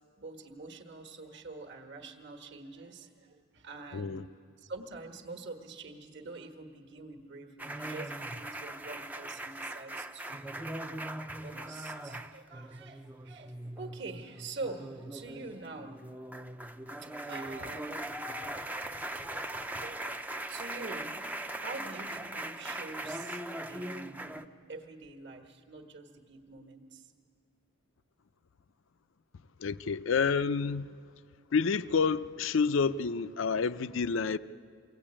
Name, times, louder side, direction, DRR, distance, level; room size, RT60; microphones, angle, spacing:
voice 1, 0.2-4.2 4.6-10.4 10.8-11.0 11.4-16.1 16.9-18.2 18.9-21.1 21.6-23.4 23.7-24.4 24.7-27.1, right 3 dB, 55° right, 1.3 m, -45 dB
voice 2, 3.9-4.3 29.6-31.0 31.5-34.4, left 5 dB, 65° left, 0.5 m, -29 dB
sound 1, 7.6-24.5, right 1 dB, 10° right, 0.5 m, -40 dB
23.5 x 17.0 x 8.7 m
head